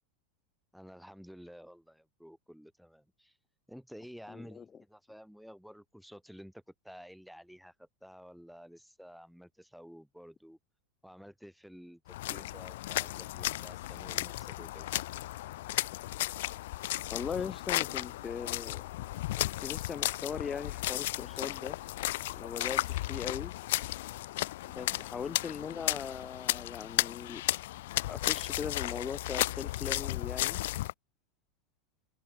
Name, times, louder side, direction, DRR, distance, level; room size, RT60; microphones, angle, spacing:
voice 1, 0.7-3.4 3.7-10.6 11.0-12.0 12.3-15.0 24.7-25.1, equal, ahead, 0.5 m, -52 dB
voice 2, 4.3-4.6 17.1-18.8 19.3-21.8 22.3-23.5 24.7-27.4 28.1-30.6, left 6 dB, 25° left, 0.8 m, -39 dB
sound 1, 12.1-30.9, left 16 dB, 65° left, 0.3 m, -34 dB
open air
hypercardioid pair, 90°, 0 cm